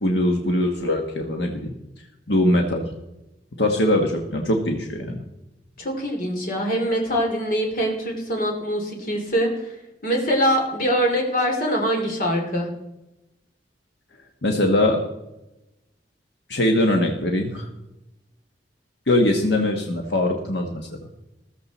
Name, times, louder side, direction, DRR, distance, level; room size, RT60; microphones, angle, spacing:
voice 1, 0.0-1.7 2.3-2.8 3.6-5.2 14.4-15.0 16.5-17.6 19.1-21.0, left 1 dB, 75° left, 2 dB, 1.3 m, -21 dB
voice 2, 5.8-9.7 10.0-12.7, equal, 50° left, 1 dB, 3.0 m, -23 dB
14.5 x 13.5 x 4.2 m, 0.95 s
head